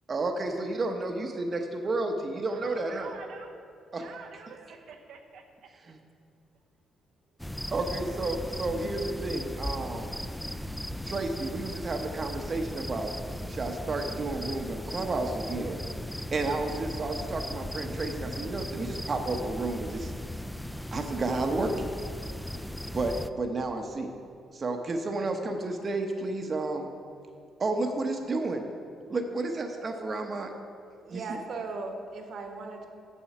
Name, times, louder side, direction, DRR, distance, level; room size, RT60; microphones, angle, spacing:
voice 1, 0.1-3.1 3.9-4.1 5.7-6.0 7.7-10.1 11.0-13.1 13.5-15.8 16.3-20.1 20.9-21.9 22.9-24.1 24.5-26.9 27.6-28.6 29.1-30.5 31.1-31.4, right 2 dB, 40° right, 4 dB, 0.8 m, -31 dB
voice 2, 2.5-3.6 4.0-5.7, right 5 dB, 85° right, 2 dB, 0.7 m, -47 dB
sound 1, 7.4-23.3, left 1 dB, ahead, 0.3 m, -37 dB
voice 3, 31.1-32.9, right 3 dB, 60° right, 4 dB, 1.2 m, -37 dB
7.7 x 7.2 x 5.9 m, 2.4 s
cardioid pair, 90°, 0 cm